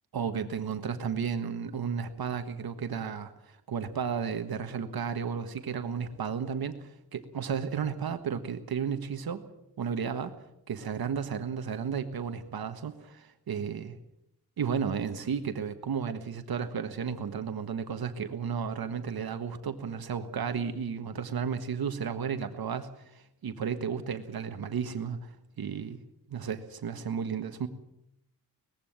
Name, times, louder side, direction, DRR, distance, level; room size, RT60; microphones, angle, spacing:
voice 1, 0.1-9.4 9.8-10.3 10.7-14.0 14.6-26.0 26.3-27.7, right 7 dB, 70° right, 8 dB, 1.5 m, -33 dB
20.0 x 15.5 x 8.9 m, 0.82 s
wide cardioid pair, 180°, 37 cm